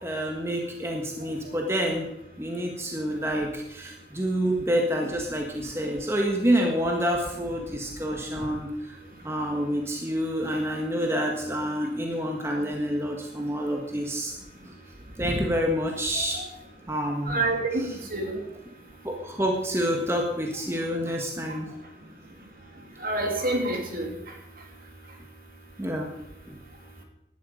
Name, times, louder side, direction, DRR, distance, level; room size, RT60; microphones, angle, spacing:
voice 1, 0.0-2.1 2.4-9.0 9.2-14.3 14.6-14.7 15.2-16.4 16.9-17.4 19.0-21.7 25.8-26.1 26.5-26.6, equal, 15° right, 1 dB, 1.6 m, -28 dB
voice 2, 16.1-16.4 17.3-17.8 18.1-18.4 23.0-24.1, right 2 dB, 50° right, 2 dB, 2.9 m, -27 dB
16.5 x 12.0 x 5.1 m, 0.88 s
head